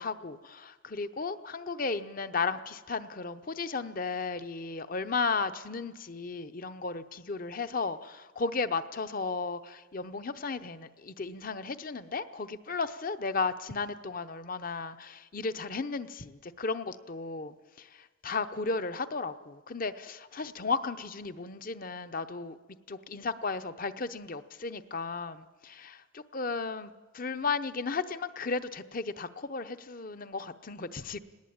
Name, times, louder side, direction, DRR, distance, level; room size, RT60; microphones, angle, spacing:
voice 1, 0.0-22.6 22.9-31.2, left 4 dB, 45° left, 11 dB, 0.8 m, -34 dB
19.0 x 18.5 x 8.8 m, 1.3 s
head